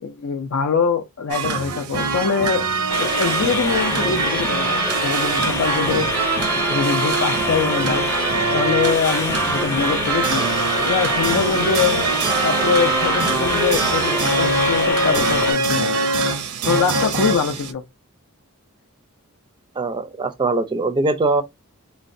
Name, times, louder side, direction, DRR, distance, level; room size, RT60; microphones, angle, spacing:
voice 1, 0.0-2.7 3.0-6.1 6.6-8.1 8.5-10.5 10.9-12.0 12.4-15.9 16.6-17.8, left 5 dB, 65° left, 0.4 m, -23 dB
sound 1, 1.3-17.7, right 3 dB, 90° right, 0.6 m, -23 dB
sound 2, 2.9-15.5, left 2 dB, 15° left, 0.7 m, -25 dB
voice 2, 19.8-21.4, right 3 dB, 20° right, 0.4 m, -21 dB
3.9 x 2.1 x 2.5 m
head